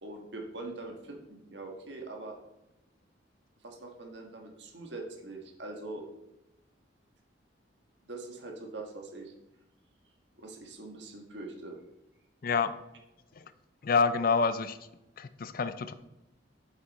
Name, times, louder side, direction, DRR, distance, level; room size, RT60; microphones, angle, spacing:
voice 1, 0.0-2.4 3.6-6.0 8.1-9.3 10.4-11.8, right 2 dB, 70° right, 2 dB, 1.5 m, -43 dB
voice 2, 12.4-12.8 13.8-14.8 15.2-15.9, left 5 dB, 50° left, 12 dB, 0.5 m, -27 dB
7.7 x 6.1 x 4.2 m, 0.92 s
head